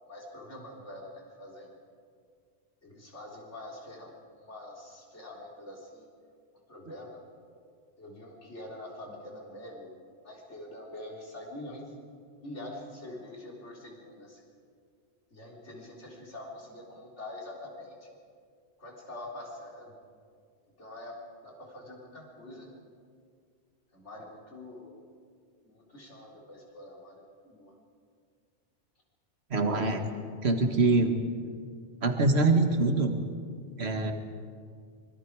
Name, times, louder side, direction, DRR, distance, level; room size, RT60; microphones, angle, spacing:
voice 1, 0.1-1.8 2.8-6.1 6.7-7.2 8.0-10.0 10.2-12.0 12.4-14.5 15.3-18.1 18.8-20.1 20.8-22.7 23.9-25.1 25.6-27.8, left 1 dB, 85° left, -2 dB, 4.2 m, -45 dB
voice 2, 29.5-30.1 30.4-31.1 32.0-33.1 33.8-34.1, right 3 dB, 65° right, 5 dB, 2.0 m, -24 dB
24.5 x 22.5 x 4.8 m, 2.1 s
omnidirectional pair, 1.2 m